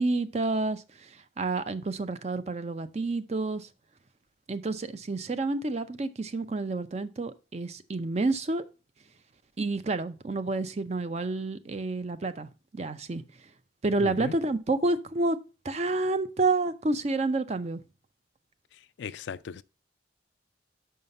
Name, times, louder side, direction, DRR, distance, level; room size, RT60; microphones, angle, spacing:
voice 1, 0.0-3.7 4.5-8.6 9.6-13.2 13.8-15.4 15.6-17.8, right 3 dB, 35° right, 0.5 m, -29 dB
voice 2, 14.0-14.3 19.0-19.6, left 6 dB, 70° left, 0.3 m, -37 dB
5.6 x 5.6 x 5.3 m
head